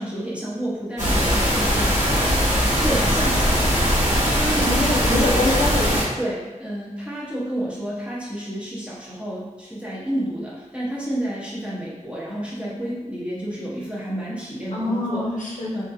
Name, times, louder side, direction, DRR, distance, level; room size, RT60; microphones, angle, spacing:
voice 1, 0.0-5.3 6.2-15.3 15.7-15.8, right 1 dB, 10° right, -8 dB, 0.9 m, -30 dB
sound 1, 1.0-6.0, equal, 70° right, 1.1 m, -20 dB
voice 2, 4.6-5.9 14.7-15.7, left 2 dB, 80° left, -5 dB, 0.6 m, -24 dB
2.5 x 2.2 x 2.6 m, 1.1 s
wide cardioid pair, 65°, 13 cm